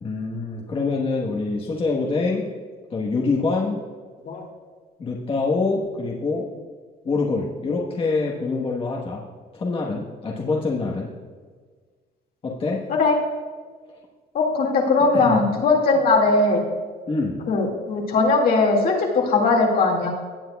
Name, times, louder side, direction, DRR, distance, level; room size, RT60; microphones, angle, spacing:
voice 1, 0.0-2.5 2.9-3.8 5.0-6.5 7.0-9.2 9.5-11.1 12.4-12.8 15.1-15.4 17.1-17.4, left 3 dB, 30° left, -3 dB, 1.3 m, -25 dB
voice 2, 14.3-16.6 17.5-20.1, left 3 dB, 60° left, 0 dB, 2.2 m, -19 dB
17.5 x 7.5 x 2.3 m, 1.5 s
cardioid pair, 110°, 17 cm